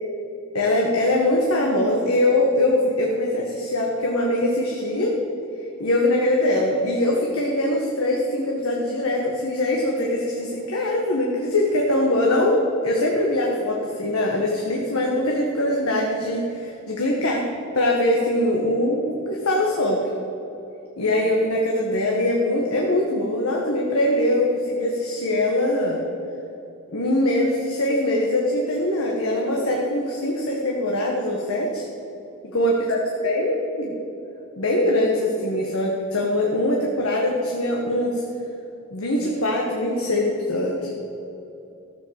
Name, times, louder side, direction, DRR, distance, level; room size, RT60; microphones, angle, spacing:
voice 1, 0.5-5.2 5.8-17.4 17.7-20.0 21.0-26.0 26.9-31.8 32.5-33.0 33.2-33.9 34.6-38.2 38.9-40.9, left 1 dB, 80° left, -1 dB, 1.5 m, -22 dB
13.5 x 7.7 x 7.4 m, 2.9 s
head